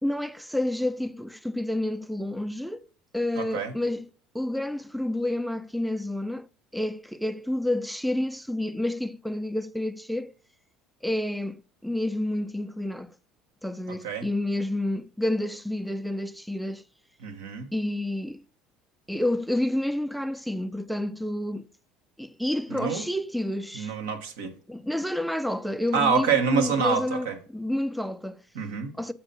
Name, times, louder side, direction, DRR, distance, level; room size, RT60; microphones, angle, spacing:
voice 1, 0.0-2.9 3.1-4.1 4.3-6.5 6.7-10.3 11.0-13.1 13.6-16.8 17.7-18.4 19.1-21.7 22.2-23.9 24.4-28.4 29.0-29.1, left 1 dB, ahead, 0.4 m, -29 dB
voice 2, 3.4-3.7 14.0-14.3 17.2-17.7 22.7-23.1 23.7-24.5 25.9-27.4 28.5-28.9, right 6 dB, 85° right, 1.1 m, -26 dB
7.2 x 4.3 x 5.2 m
hypercardioid pair, 75°, 0 cm